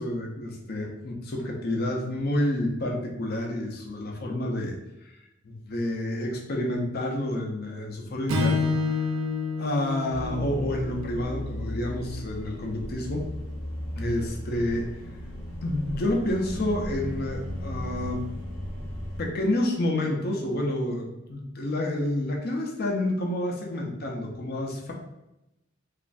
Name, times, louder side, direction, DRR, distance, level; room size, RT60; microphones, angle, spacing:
voice 1, 0.0-4.8 5.0-5.1 5.4-8.8 9.6-13.3 14.0-14.9 15.6-18.2 18.6-18.8 19.2-24.9, left 1 dB, 50° left, 1 dB, 0.5 m, -29 dB
Strum, 8.3-12.6, left 4 dB, 85° right, 0.5 m, -30 dB
sound 1, 10.1-19.3, left 1 dB, 15° left, 0.9 m, -35 dB
3.1 x 2.4 x 2.5 m, 0.92 s
head